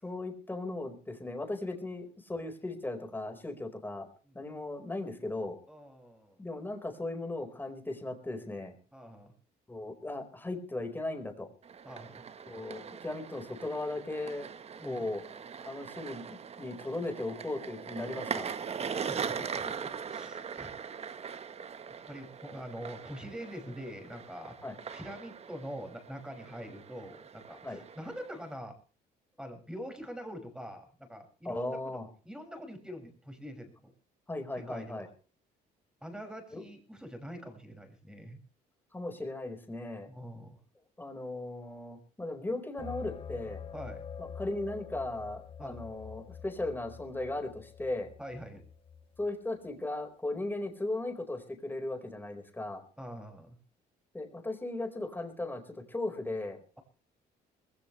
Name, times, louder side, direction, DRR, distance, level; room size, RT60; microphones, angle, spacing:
voice 1, 0.0-4.1 4.3-5.6 6.4-8.7 9.7-11.5 12.5-14.5 14.8-15.2 15.6-18.5 24.6-24.7 27.6-27.8 31.4-32.0 34.3-35.1 36.5-36.6 38.9-40.1 41.0-43.6 44.2-48.1 49.2-52.8 54.1-56.6, left 2 dB, 10° left, 5 dB, 4.8 m, -37 dB
voice 2, 5.7-6.4 8.9-9.3 11.8-12.2 14.8-15.1 19.1-20.7 22.0-24.6 24.9-28.7 29.4-33.9 34.5-35.1 36.0-38.4 40.1-40.6 43.7-44.1 45.6-45.8 48.2-48.6 53.0-53.6, equal, 5° right, 5 dB, 6.3 m, -44 dB
sound 1, 11.6-28.6, right 6 dB, 40° right, 1.3 m, -41 dB
sound 2, 42.8-49.3, left 7 dB, 30° left, 1.2 m, -46 dB
21.0 x 16.5 x 3.3 m, 0.38 s
cardioid pair, 110°, 17 cm